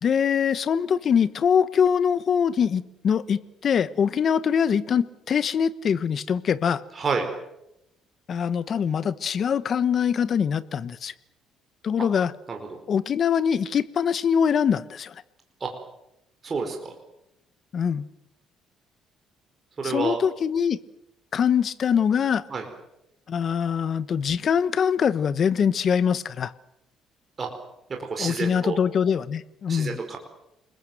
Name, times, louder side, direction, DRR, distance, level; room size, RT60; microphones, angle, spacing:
voice 1, 0.0-6.8 8.3-11.1 11.8-12.3 12.9-15.2 17.7-18.1 19.8-20.8 21.3-22.4 23.3-26.5 28.2-30.0, left 7 dB, 45° left, 15 dB, 1.2 m, -23 dB
voice 2, 6.9-7.3 12.5-12.6 15.6-15.7 16.4-16.9 19.8-20.2 22.5-22.6 27.4-27.5 28.1-28.8 29.7-30.2, right 4 dB, 30° right, 3 dB, 4.8 m, -28 dB
29.5 x 21.0 x 7.9 m, 0.85 s
cardioid pair, 125°, 0 cm